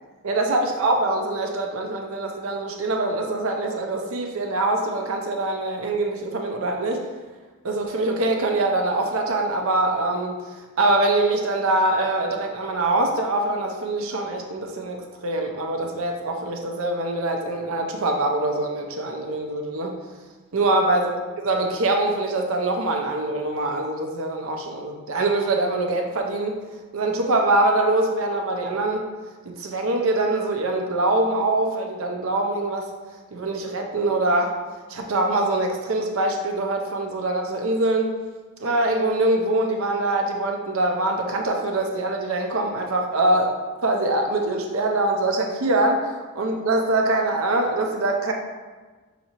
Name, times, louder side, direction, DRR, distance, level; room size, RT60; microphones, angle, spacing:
voice 1, 0.2-7.0 7.6-10.4 10.8-19.9 20.5-21.1 21.4-26.6 26.9-29.0 29.5-32.9 33.3-34.6 34.9-38.1 38.6-43.5 43.8-48.3, right 2 dB, 70° right, 2 dB, 0.6 m, -23 dB
5.8 x 2.7 x 2.9 m, 1.3 s
head